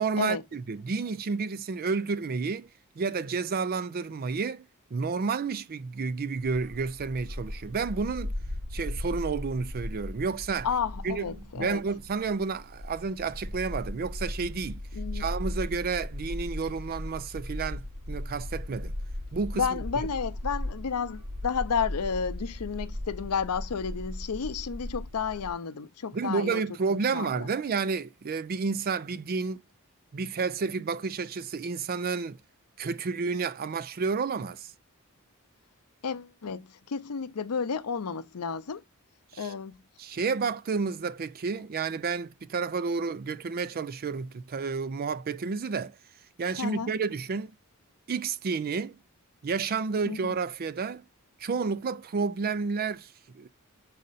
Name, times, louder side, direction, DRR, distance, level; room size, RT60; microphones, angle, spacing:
voice 1, 0.0-2.7 3.0-8.3 8.7-10.7 11.0-14.8 15.1-18.9 19.3-19.7 26.1-29.6 30.1-32.4 32.8-34.7 39.3-39.5 40.0-46.0 46.4-47.5 48.1-49.0 49.4-51.0 51.4-53.5, right 4 dB, 40° right, 0.4 m, -31 dB
Bark, 6.4-25.5, left 1 dB, 85° right, 2.5 m, -37 dB
voice 2, 10.6-11.8 14.9-15.2 19.5-26.6 26.9-27.5 36.0-38.8 39.4-39.8 46.6-46.9 50.1-50.3, left 6 dB, 85° left, 0.6 m, -32 dB
6.4 x 4.1 x 4.0 m
head